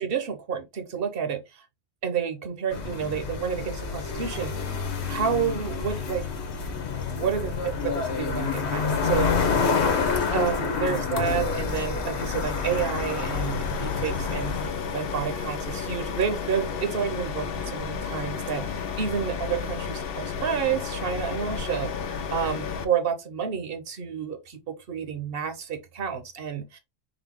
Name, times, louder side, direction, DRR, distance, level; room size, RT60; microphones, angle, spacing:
voice 1, 0.0-1.6 2.0-4.6 5.1-6.3 7.1-9.3 10.3-26.8, right 7 dB, 60° right, 1.0 m, -30 dB
sound 1, 2.7-14.7, left 5 dB, 80° left, 1.1 m, -28 dB
sound 2, 11.2-22.8, left 6 dB, 65° left, 0.8 m, -32 dB
3.9 x 2.7 x 3.5 m
omnidirectional pair, 1.1 m